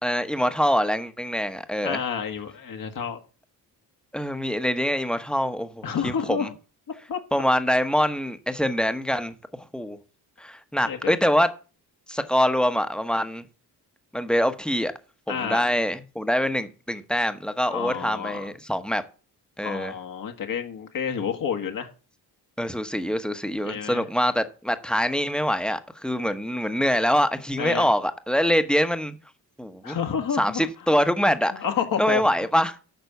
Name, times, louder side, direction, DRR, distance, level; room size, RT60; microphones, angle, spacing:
voice 1, 0.0-2.0 4.1-6.5 7.3-10.0 10.4-11.5 12.1-13.5 14.1-14.9 15.3-19.0 19.6-19.9 22.6-29.2 29.6-30.0 30.4-31.6 32.0-32.8, equal, ahead, 1.0 m, -24 dB
voice 2, 1.8-3.2 5.8-6.5 7.1-7.2 10.8-11.1 15.3-15.6 17.7-18.5 19.6-21.9 23.6-24.0 27.6-27.9 29.8-30.7 31.5-32.2, left 7 dB, 60° left, 1.6 m, -29 dB
9.3 x 6.1 x 6.9 m
cardioid pair, 105°, 38 cm